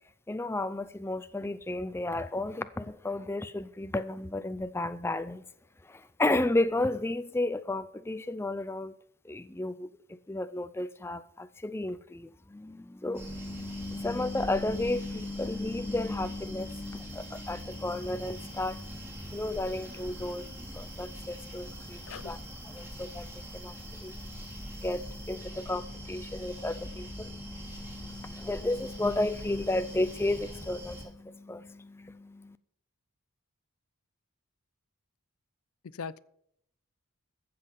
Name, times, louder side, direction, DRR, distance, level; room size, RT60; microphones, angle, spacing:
voice 1, 0.3-5.5 5.9-8.9 9.2-22.4 22.7-32.6, left 2 dB, 10° left, 0.4 m, -33 dB
sound 1, 13.1-31.0, equal, 10° right, 2.5 m, -43 dB
voice 2, 35.8-36.2, left 5 dB, 70° left, 0.5 m, -40 dB
14.5 x 7.7 x 5.4 m
head